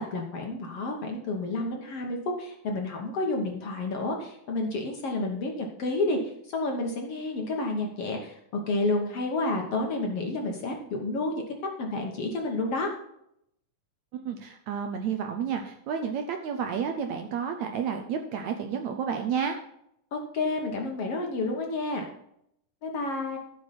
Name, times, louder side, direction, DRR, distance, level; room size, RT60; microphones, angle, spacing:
voice 1, 0.0-8.4 8.7-11.4 11.8-12.9 20.1-22.1 22.8-23.4, left 2 dB, 55° left, 1 dB, 2.0 m, -30 dB
voice 2, 14.1-19.6, right 7 dB, 70° right, 5 dB, 1.8 m, -31 dB
14.5 x 6.7 x 4.3 m, 0.74 s
omnidirectional pair, 4.0 m